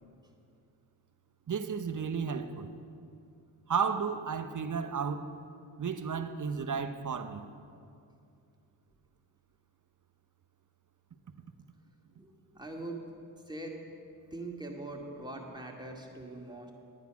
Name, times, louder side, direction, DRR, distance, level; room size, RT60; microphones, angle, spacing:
voice 1, 1.5-2.7 3.7-5.3 5.8-7.5, right 6 dB, 45° right, 0.9 m, -33 dB
voice 2, 12.2-13.0 13.5-13.8 14.3-16.7, right 2 dB, 10° right, 2.2 m, -42 dB
10.5 x 9.5 x 5.9 m
supercardioid pair, 40°, 44 cm